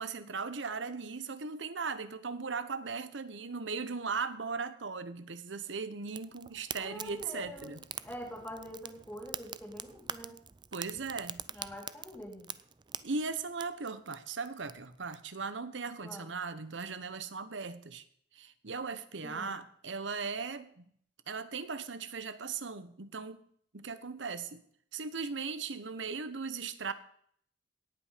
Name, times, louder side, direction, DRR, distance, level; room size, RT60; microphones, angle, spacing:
voice 1, 0.0-7.8 10.7-11.7 13.0-18.0 18.3-20.9 21.3-23.5 23.7-24.6 24.9-26.9, right 4 dB, 85° right, 13 dB, 1.1 m, -38 dB
Fire, 6.1-15.2, right 8 dB, 25° right, 0.4 m, -45 dB
voice 2, 6.8-7.8 8.0-10.4 11.5-12.5 16.0-16.3 19.2-19.6, equal, 10° left, 3 dB, 2.3 m, -45 dB
17.5 x 8.6 x 5.1 m, 0.64 s
head